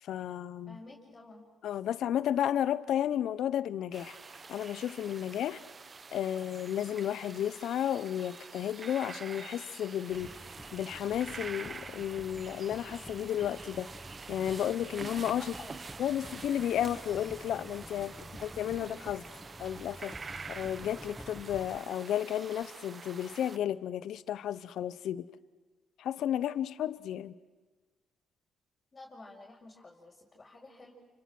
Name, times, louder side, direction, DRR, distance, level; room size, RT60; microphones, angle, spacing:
voice 1, 0.0-0.8 1.6-4.2 4.5-5.6 6.1-10.3 10.7-13.9 14.3-15.5 16.0-19.3 19.6-20.2 20.5-25.3 26.0-27.4, left 10 dB, 75° left, 16 dB, 0.8 m, -33 dB
voice 2, 0.7-1.5 15.3-15.9 28.9-30.9, left 2 dB, 30° left, -4 dB, 5.1 m, -51 dB
sound 1, 3.9-23.6, right 4 dB, 40° right, 0.9 m, -47 dB
sound 2, 10.1-21.8, equal, 5° right, 0.9 m, -49 dB
29.5 x 26.0 x 6.2 m, 1.3 s
cardioid pair, 75°, 0 cm